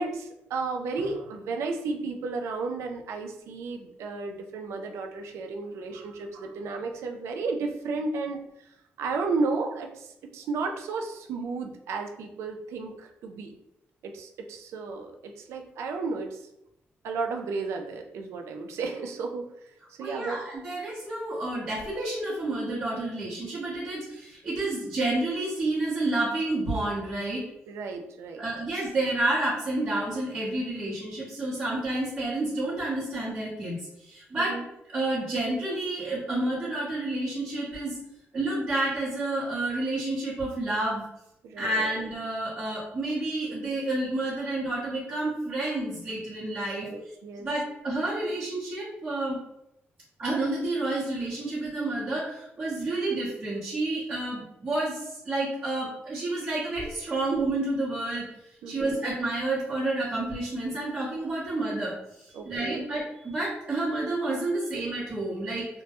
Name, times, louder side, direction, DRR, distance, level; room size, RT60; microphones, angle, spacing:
voice 1, 0.0-13.5 14.0-16.5 17.0-20.4 27.7-28.5 34.4-34.6 41.4-41.9 46.8-47.5 58.6-59.0 62.3-62.9, right 4 dB, 85° right, 3 dB, 0.3 m, -33 dB
voice 2, 20.0-27.4 28.4-34.6 34.9-38.0 38.3-41.0 41.6-46.9 47.4-49.4 50.2-65.7, right 2 dB, 35° right, -9 dB, 0.8 m, -30 dB
2.1 x 2.1 x 2.8 m, 0.82 s
cardioid pair, 115°, 5 cm